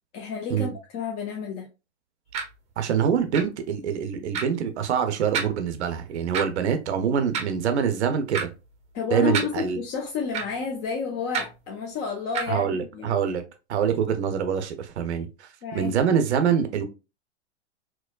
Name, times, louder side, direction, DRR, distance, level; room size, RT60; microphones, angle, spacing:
voice 1, 0.1-1.7 8.9-13.2 15.6-16.0, left 6 dB, 25° left, 0.5 m, -31 dB
sound 1, 2.3-2.4 3.3-3.4 4.3-4.4 5.3-5.5 6.3-6.4 7.3-7.5 8.3-8.4 9.3-9.4 10.3-10.5 11.3-11.5 12.3-12.4, right 6 dB, 20° right, 0.6 m, -27 dB
voice 2, 2.8-8.5 9.1-9.8 12.5-13.4 13.7-16.8, right 7 dB, 65° right, 0.6 m, -25 dB
4.4 x 2.1 x 2.2 m
figure-of-eight pair, 110°, 36 cm